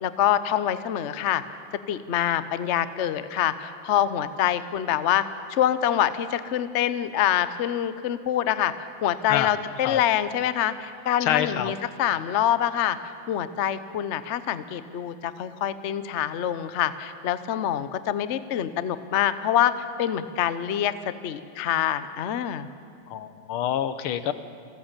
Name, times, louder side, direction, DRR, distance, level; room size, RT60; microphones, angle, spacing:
voice 1, 0.0-1.4 1.9-5.2 5.5-8.7 9.0-13.0 13.3-20.9 21.2-22.7, left 10 dB, 70° left, 13 dB, 0.6 m, -25 dB
voice 2, 11.2-11.7 23.1-24.3, left 10 dB, 85° left, 13 dB, 1.7 m, -26 dB
29.0 x 14.0 x 7.4 m, 2.4 s
omnidirectional pair, 2.3 m